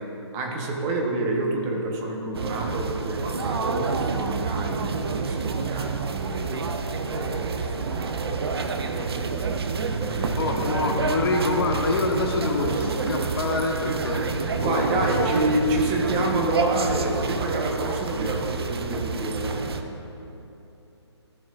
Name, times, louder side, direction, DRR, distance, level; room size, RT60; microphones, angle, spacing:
voice 1, 0.0-6.7 7.1-8.4 8.9-9.6 10.0-10.6 14.6-19.7, right 2 dB, 20° right, 1 dB, 1.1 m, -28 dB
sound 1, 2.3-19.8, right 4 dB, 60° right, 0.7 m, -28 dB
voice 2, 10.4-14.3 14.6-15.3, left 3 dB, 55° left, 1 dB, 1.4 m, -26 dB
14.0 x 6.2 x 2.5 m, 2.9 s
figure-of-eight pair, 140°, 15 cm